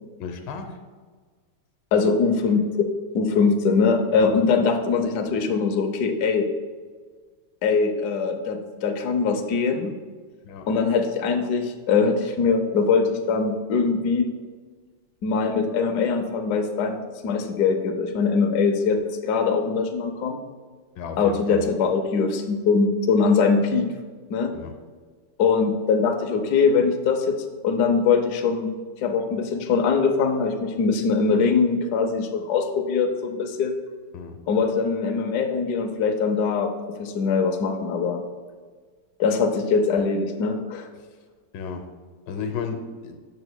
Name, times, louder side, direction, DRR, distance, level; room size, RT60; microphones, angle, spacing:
voice 1, 0.2-0.8 4.1-4.4 10.4-10.7 21.0-21.7 24.5-24.7 34.1-34.4 41.5-41.9 42.3-43.2, left 6 dB, 90° left, 5 dB, 1.5 m, -33 dB
voice 2, 1.9-2.9 3.1-6.5 7.6-9.9 10.7-14.3 15.2-20.4 21.2-23.9 24.3-24.5 25.4-28.7 29.0-33.7 34.5-38.2 39.2-40.9, left 5 dB, 65° left, 4 dB, 1.1 m, -22 dB
8.8 x 6.8 x 2.2 m, 1.5 s
omnidirectional pair, 2.1 m